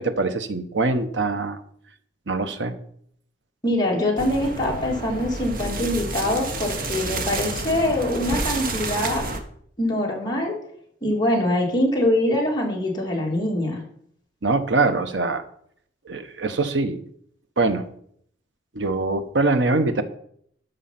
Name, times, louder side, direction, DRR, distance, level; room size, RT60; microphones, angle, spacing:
voice 1, 0.0-1.6 2.3-2.7 14.4-15.4 16.0-17.0 17.6-17.8 18.7-20.0, right 3 dB, 80° right, 9 dB, 1.1 m, -23 dB
voice 2, 3.6-9.2 9.8-10.6 11.0-13.8, left 1 dB, 25° left, -2 dB, 3.0 m, -23 dB
sound 1, 4.2-9.4, right 2 dB, 50° right, 1.3 m, -30 dB
13.0 x 5.6 x 5.9 m, 0.66 s
head